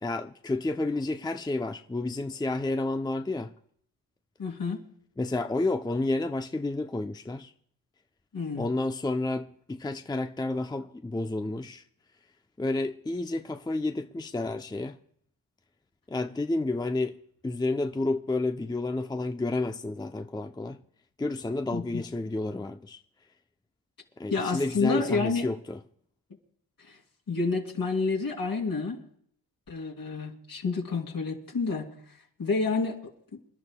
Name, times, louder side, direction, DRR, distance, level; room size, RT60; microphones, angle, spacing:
voice 1, 0.0-3.5 5.2-7.5 8.6-11.8 12.6-14.9 16.1-17.2 17.4-20.8 21.2-23.0 24.2-25.8, left 2 dB, 10° left, 0.6 m, -30 dB
voice 2, 4.4-4.8 8.3-8.7 21.7-22.1 24.3-25.5 26.9-27.0 27.3-29.0 29.7-31.9 32.4-33.0, left 4 dB, 60° left, 3.0 m, -29 dB
28.0 x 12.0 x 2.2 m
cardioid pair, 55°, 39 cm